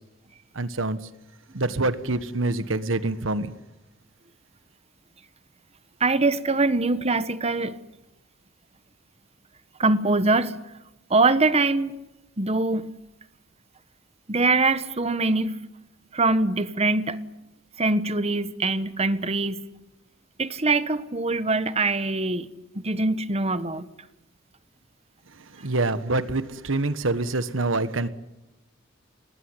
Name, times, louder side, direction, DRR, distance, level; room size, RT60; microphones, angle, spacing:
voice 1, 0.5-1.0 1.5-3.5 25.6-28.1, right 2 dB, 70° right, 1.5 m, -26 dB
voice 2, 6.0-7.8 9.8-10.6 11.1-11.9 12.4-12.9 14.3-15.6 16.1-17.2 17.8-19.6 20.4-22.5 22.7-23.9, right 3 dB, 30° right, 1.3 m, -23 dB
28.5 x 19.5 x 9.8 m
head